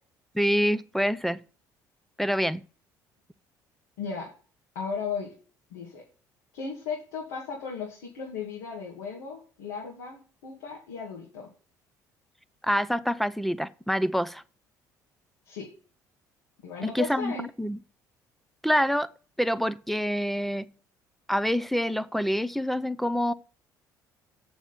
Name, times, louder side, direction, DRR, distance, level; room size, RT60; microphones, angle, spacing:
voice 1, 0.3-1.4 2.2-2.6 12.7-14.4 16.8-17.3 17.6-17.8 18.6-19.1 19.4-20.7 21.3-23.3, equal, ahead, 0.6 m, -26 dB
voice 2, 4.0-4.3 4.7-5.3 5.7-6.0 6.5-11.5 15.5-15.6 16.6-17.5, left 5 dB, 90° left, 2.3 m, -36 dB
7.1 x 6.9 x 5.9 m
supercardioid pair, 70°, 9 cm